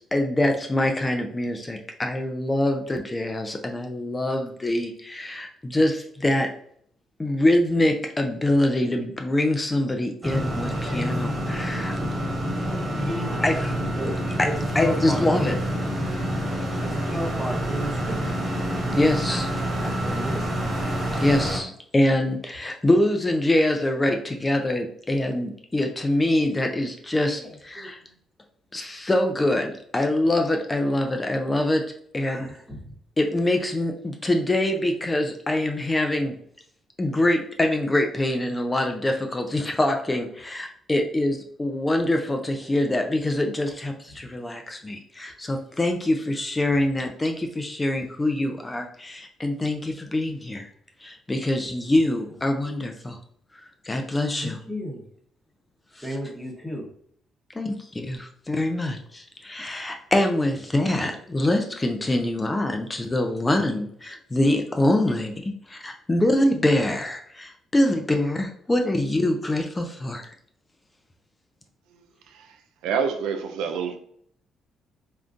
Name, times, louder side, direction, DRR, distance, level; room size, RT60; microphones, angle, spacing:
voice 1, 0.0-6.5 7.2-11.9 13.4-13.7 14.7-15.5 18.9-19.5 21.2-28.0 28.7-31.8 32.1-32.5 33.2-36.4 37.0-50.7 51.0-53.2 53.8-54.6 56.0-56.1 57.5-70.3, left 1 dB, 20° left, 0.4 m, -24 dB
sound 1, 10.2-21.6, equal, 30° right, 1.4 m, -27 dB
voice 2, 13.0-13.5 14.0-14.1 14.4-15.6 16.8-18.4 19.3-20.5 27.4-27.9 32.2-32.8 54.4-55.0 56.0-56.9 63.2-63.3 63.7-63.8, equal, 5° left, 0.9 m, -33 dB
voice 3, 72.3-72.6 72.8-74.0, right 6 dB, 85° right, 0.3 m, -27 dB
3.6 x 2.2 x 2.5 m
cardioid pair, 75°, 0 cm